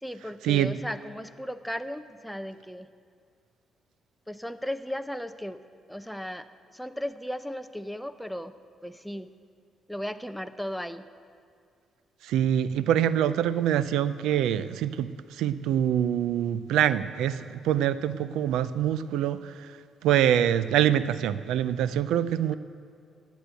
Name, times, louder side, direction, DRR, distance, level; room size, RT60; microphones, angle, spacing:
voice 1, 0.0-2.9 4.3-5.6 5.9-8.5 8.8-9.3 9.9-11.1, equal, ahead, 9 dB, 0.5 m, -36 dB
voice 2, 12.2-19.7 20.0-22.5, right 10 dB, 90° right, 15 dB, 0.4 m, -25 dB
10.5 x 8.2 x 8.9 m, 2.2 s
cardioid pair, 90°, 0 cm